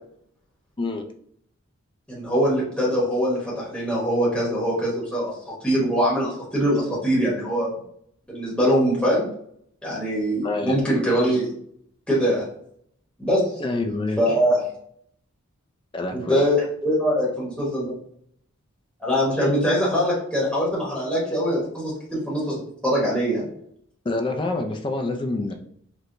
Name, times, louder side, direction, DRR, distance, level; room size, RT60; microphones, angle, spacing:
voice 1, 2.1-5.3 5.6-7.7 8.3-9.3 9.8-11.5 12.1-12.4 13.2-13.6 14.2-14.6 16.1-17.9 19.0-23.4, equal, 5° left, -7 dB, 0.9 m, -23 dB
voice 2, 10.4-10.8 13.6-14.2 15.9-16.4 24.0-25.5, left 2 dB, 25° left, 5 dB, 0.3 m, -27 dB
4.4 x 2.1 x 2.5 m, 0.67 s
head